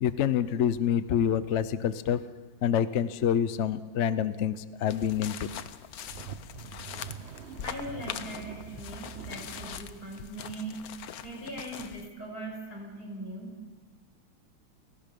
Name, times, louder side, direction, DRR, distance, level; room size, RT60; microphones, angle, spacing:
voice 1, 0.0-2.2 2.6-5.5, left 9 dB, 90° left, 14 dB, 0.6 m, -27 dB
sound 1, 4.9-12.1, left 9 dB, 65° left, 0.9 m, -42 dB
sound 2, 5.9-10.0, right 6 dB, 50° right, 0.8 m, -44 dB
voice 2, 7.6-10.9 11.2-13.6, right 1 dB, 45° left, 0 dB, 6.3 m, -40 dB
30.0 x 17.5 x 5.3 m, 1.3 s
omnidirectional pair, 2.3 m